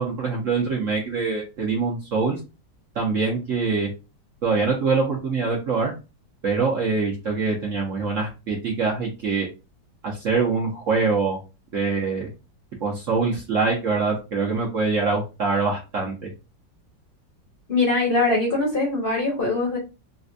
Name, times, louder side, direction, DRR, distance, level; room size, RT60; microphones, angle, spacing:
voice 1, 0.0-2.4 2.9-3.9 4.4-5.9 6.4-9.5 10.0-11.4 11.7-12.3 12.8-16.3, right 4 dB, 60° right, -2 dB, 0.9 m, -24 dB
voice 2, 17.7-19.8, left 3 dB, 45° left, -1 dB, 0.8 m, -22 dB
4.2 x 2.2 x 2.5 m, 0.28 s
omnidirectional pair, 2.0 m